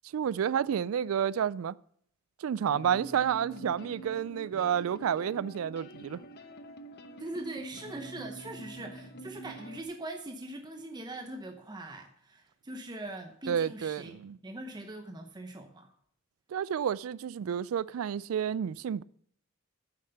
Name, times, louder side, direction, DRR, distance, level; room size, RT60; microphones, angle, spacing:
voice 1, 0.1-1.8 2.4-6.2 13.5-14.4 16.5-19.0, right 8 dB, 75° right, 0.3 m, -30 dB
sound 1, 2.6-9.8, right 1 dB, 50° left, 0.9 m, -46 dB
voice 2, 7.2-14.2 14.4-15.9, right 1 dB, 20° right, 0.9 m, -42 dB
9.9 x 7.3 x 6.7 m
head